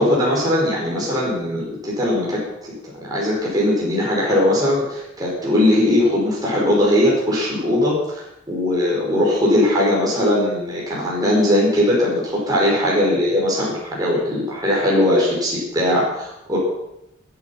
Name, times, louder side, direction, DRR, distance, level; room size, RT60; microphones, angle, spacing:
voice 1, 0.0-2.7 3.0-16.6, left 1 dB, 20° right, -5 dB, 5.5 m, -19 dB
20.5 x 9.7 x 6.0 m, 0.85 s
head